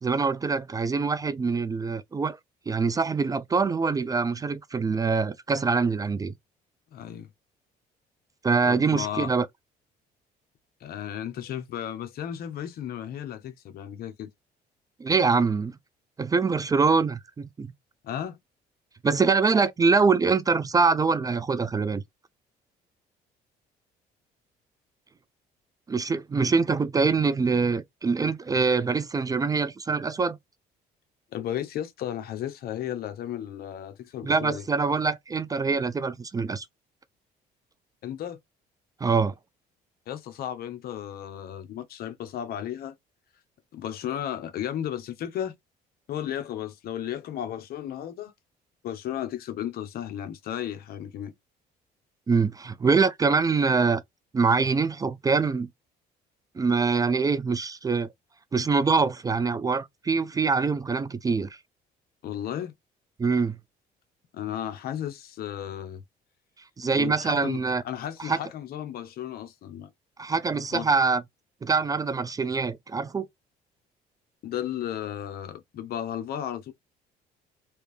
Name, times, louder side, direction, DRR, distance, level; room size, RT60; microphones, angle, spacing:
voice 1, 0.0-2.4 2.7-6.3 8.4-9.5 15.0-15.7 16.2-17.7 19.0-22.0 25.9-30.4 34.2-36.6 39.0-39.3 52.3-54.0 54.3-55.7 56.6-58.1 58.5-61.5 63.2-63.6 66.8-67.8 68.2-68.4 70.2-71.2 71.6-73.3, right 4 dB, 20° right, 0.4 m, -24 dB
voice 2, 6.9-7.3 8.6-9.3 10.8-14.3 18.0-18.4 31.3-34.6 38.0-38.4 40.1-43.0 43.7-45.5 46.1-48.3 48.8-51.3 62.2-62.7 64.3-66.0 66.9-67.6 67.8-69.9 70.7-70.9 74.4-76.7, left 10 dB, 65° left, 0.8 m, -34 dB
3.2 x 2.7 x 3.2 m
cardioid pair, 110°, 17 cm